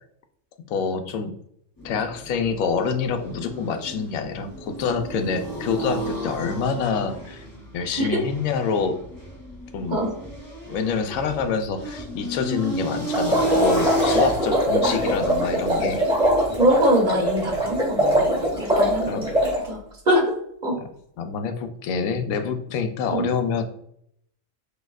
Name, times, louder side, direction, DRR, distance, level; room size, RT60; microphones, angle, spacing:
voice 1, 0.7-1.3 1.8-7.4 7.7-9.0 9.7-10.0 10.7-16.0 19.1-19.3 20.8-20.9 21.2-23.6, left 5 dB, 90° left, 8 dB, 1.0 m, -26 dB
sound 1, 1.8-19.0, right 1 dB, 15° left, 0.9 m, -33 dB
sound 2, 13.1-19.6, equal, 5° right, 1.3 m, -22 dB
voice 2, 16.6-19.3 19.6-19.8 20.1-20.3 20.6-20.8 23.1-23.3, equal, 40° right, 0 dB, 0.9 m, -23 dB
6.2 x 2.7 x 2.3 m, 0.72 s
omnidirectional pair, 1.4 m